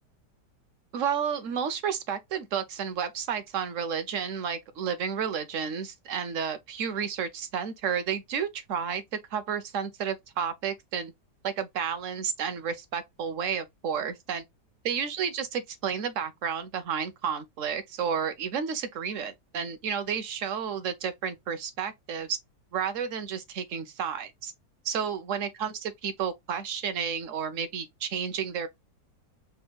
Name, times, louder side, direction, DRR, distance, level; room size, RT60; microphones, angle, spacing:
voice 1, 0.9-9.0 9.3-11.1 11.4-14.4 14.8-22.4 22.7-24.5 24.8-28.7, right 7 dB, 55° right, 1.0 m, -31 dB
5.3 x 3.2 x 2.3 m
omnidirectional pair, 1.8 m